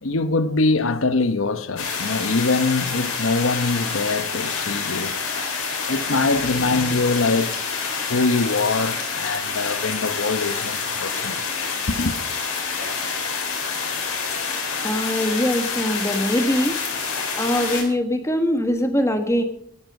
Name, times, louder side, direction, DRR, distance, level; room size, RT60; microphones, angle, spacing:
voice 1, 0.0-5.1 5.9-7.5 8.1-11.4 11.9-12.1, left 3 dB, 70° left, 0.9 m, -23 dB
sound 1, 1.8-17.8, left 5 dB, 90° left, 4.1 m, -27 dB
voice 2, 14.8-16.8 17.4-19.4, equal, 15° left, 1.3 m, -22 dB
12.5 x 12.0 x 5.4 m
head